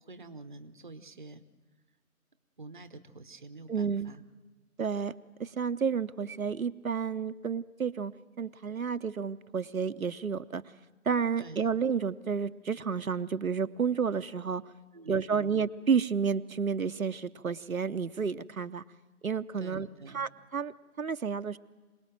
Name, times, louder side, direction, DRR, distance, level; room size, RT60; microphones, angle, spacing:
voice 1, 0.0-1.4 2.6-4.2 11.4-11.7 14.9-15.6 19.6-20.3, right 3 dB, 35° right, 12 dB, 0.8 m, -47 dB
voice 2, 3.7-4.1 4.8-5.1 5.4-8.1 8.4-10.6 11.0-14.6 15.1-18.8 19.2-19.9 20.1-21.6, right 6 dB, 70° right, 10 dB, 0.8 m, -31 dB
26.5 x 19.0 x 7.6 m, 1.3 s
figure-of-eight pair, 155°, 43 cm